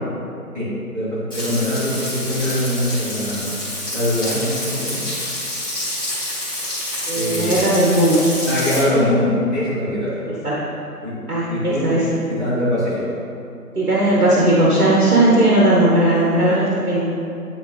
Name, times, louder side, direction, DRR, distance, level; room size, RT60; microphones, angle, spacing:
voice 1, 0.5-3.6 3.9-5.0 7.1-7.6 8.4-10.2 11.0-11.1 11.5-11.9 12.3-13.1, left 1 dB, 10° right, -16 dB, 1.5 m, -22 dB
Frying (food), 1.3-8.8, left 1 dB, 15° left, 1.5 m, -28 dB
voice 2, 7.1-8.4 10.4-10.6 11.3-12.1 13.7-17.0, right 1 dB, 70° right, -6 dB, 1.4 m, -17 dB
10.5 x 3.7 x 3.4 m, 2.7 s
figure-of-eight pair, 165°, 46 cm